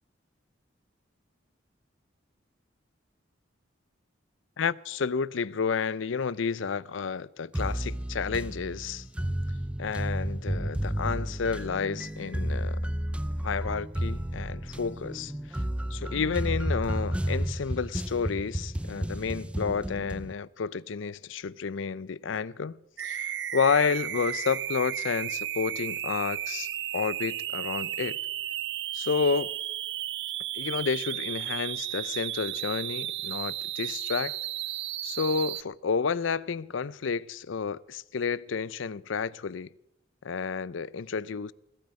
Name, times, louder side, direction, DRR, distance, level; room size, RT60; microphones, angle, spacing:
voice 1, 4.6-9.1 9.8-12.8 13.4-15.6 15.9-28.2 28.9-29.5 30.5-34.4 35.0-39.7 40.2-41.5, left 5 dB, 80° left, 0.5 m, -30 dB
sound 1, 7.5-20.3, equal, 5° right, 0.5 m, -32 dB
sound 2, 23.0-35.6, right 12 dB, 60° right, 0.6 m, -34 dB
20.5 x 13.5 x 4.8 m
head